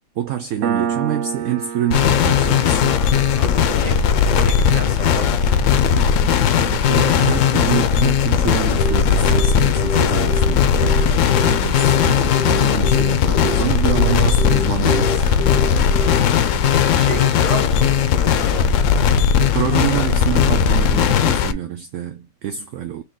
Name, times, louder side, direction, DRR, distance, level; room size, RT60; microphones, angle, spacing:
voice 1, 0.2-3.0 6.6-15.5 19.5-23.0, right 10 dB, 70° right, 0.8 m, -26 dB
Piano, 0.6-7.8, right 8 dB, 90° right, 1.2 m, -31 dB
sound 1, 1.9-21.5, left 7 dB, 70° left, 0.9 m, -17 dB
voice 2, 3.4-5.3 15.9-16.5 17.0-18.8, right 4 dB, 30° right, 1.4 m, -32 dB
Telephone, 8.8-16.2, equal, 25° left, 0.7 m, -28 dB
4.3 x 2.9 x 3.4 m
omnidirectional pair, 1.5 m